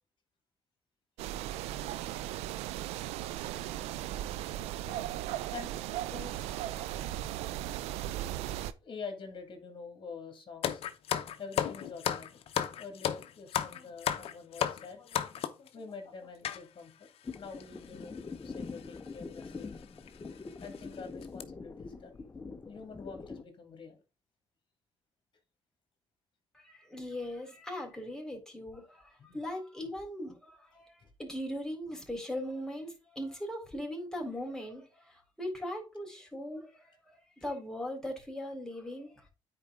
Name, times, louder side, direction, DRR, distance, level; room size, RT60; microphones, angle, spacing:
sound 1, 1.2-8.7, right 13 dB, 85° right, 0.5 m, -37 dB
voice 1, 6.1-7.1 26.5-37.0 37.4-39.3, left 1 dB, 5° left, 3.7 m, -40 dB
voice 2, 7.4-8.2 8.8-10.8 11.4-12.4 12.8-17.1 17.4-19.7 20.3-22.2 22.7-24.0 29.2-29.4 31.0-31.1, left 5 dB, 50° left, 2.3 m, -47 dB
sound 2, 10.6-15.7 16.4-16.6 17.3-17.4 17.6-17.8 18.8-19.0 19.4-19.5 20.1-20.2 20.6-20.8 21.2-21.4, left 10 dB, 65° left, 0.7 m, -33 dB
sound 3, 17.2-23.4, left 4 dB, 25° left, 0.9 m, -44 dB
9.6 x 4.6 x 3.7 m
supercardioid pair, 65°, 11 cm